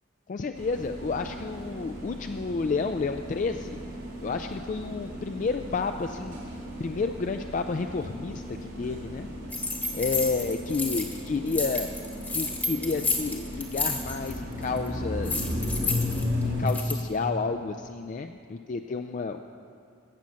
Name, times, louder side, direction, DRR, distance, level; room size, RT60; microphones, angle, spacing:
voice 1, 0.3-3.8 4.2-6.5 6.8-9.3 9.9-11.9 12.3-15.6 16.4-19.4, left 4 dB, 40° left, 6 dB, 0.3 m, -30 dB
sound 1, 0.5-16.7, left 1 dB, 70° right, 2.9 m, -35 dB
sound 2, 9.5-11.2 11.5-14.4 14.6-14.9 15.3-17.0, left 3 dB, 10° left, 1.1 m, -31 dB
15.0 x 7.0 x 6.3 m, 2.4 s
head